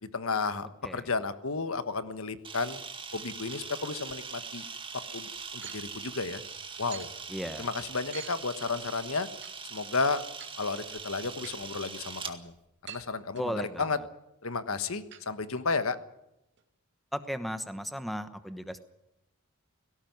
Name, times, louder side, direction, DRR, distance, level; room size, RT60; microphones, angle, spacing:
voice 1, 0.0-2.8 3.1-4.6 5.1-6.4 6.8-7.1 7.6-9.3 9.7-10.2 10.6-12.5 12.8-14.0 14.4-16.0, left 4 dB, 65° left, 12 dB, 1.3 m, -32 dB
Camera, 2.4-12.3, right 5 dB, 25° right, 2.0 m, -42 dB
sound 1, 5.6-5.8 6.9-7.1 8.1-8.3 9.4-9.5 10.2-10.5 11.4-11.6 12.9-13.1 13.3-13.9 15.1-15.2 15.6-15.7 16.0-16.1 16.6-16.7, right 9 dB, 55° right, 2.7 m, -45 dB
voice 2, 7.3-7.7 13.4-14.0 17.1-18.8, equal, ahead, 10 dB, 1.1 m, -36 dB
18.0 x 17.5 x 9.4 m, 0.86 s
head